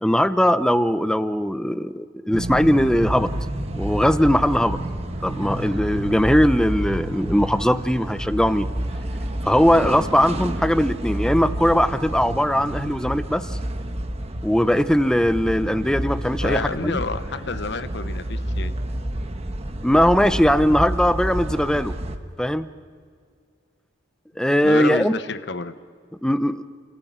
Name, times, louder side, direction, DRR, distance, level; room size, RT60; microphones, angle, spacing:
voice 1, 0.0-3.3 3.7-4.8 5.2-8.7 9.4-13.6 14.4-17.0 19.8-21.9 22.4-22.7 24.4-25.2 26.2-26.6, equal, 5° left, 13 dB, 0.6 m, -20 dB
sound 1, 2.3-22.2, right 1 dB, 30° right, 1.2 m, -29 dB
voice 2, 16.4-18.7 24.6-25.8, left 3 dB, 60° left, 12 dB, 0.9 m, -29 dB
29.5 x 15.0 x 9.3 m, 2.1 s
head